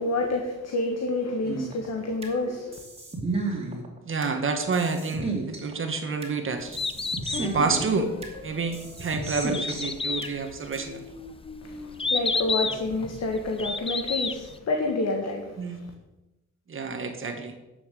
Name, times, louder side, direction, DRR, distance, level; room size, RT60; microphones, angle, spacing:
voice 1, 0.0-2.8 11.6-15.6, left 2 dB, 55° left, 2 dB, 1.7 m, -28 dB
sound 1, 1.4-2.4 2.7-4.4 4.7-6.4 6.7-8.4 8.7-10.4 10.7-10.8, right 3 dB, 20° right, 2.6 m, -33 dB
voice 2, 4.0-6.8 7.4-8.1 8.4-11.1 15.6-15.8 16.7-17.5, right 4 dB, 40° right, 5 dB, 1.5 m, -28 dB
Bird, 6.6-14.6, left 3 dB, 20° left, 0.7 m, -31 dB
sound 2, 7.3-10.0 10.6-13.1, left 2 dB, 40° left, 2.7 m, -43 dB
10.5 x 7.1 x 7.0 m, 1.0 s
cardioid pair, 115°, 31 cm